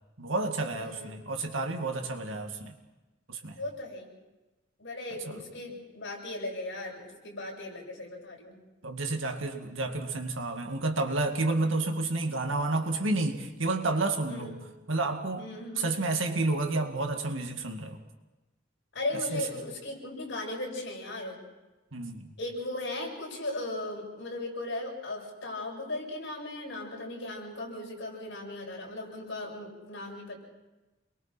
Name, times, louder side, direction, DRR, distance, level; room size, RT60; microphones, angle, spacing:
voice 1, 0.2-2.7 3.3-3.6 5.3-5.4 8.8-14.5 14.9-15.5 15.8-18.0 19.3-19.4 21.9-22.2, right 2 dB, 75° right, 5 dB, 2.2 m, -30 dB
voice 2, 0.7-1.2 3.6-4.1 4.8-8.6 14.3-14.6 15.4-15.9 18.9-21.4 22.4-30.4, left 2 dB, 65° left, -2 dB, 7.6 m, -37 dB
29.0 x 22.5 x 4.5 m, 1.1 s
head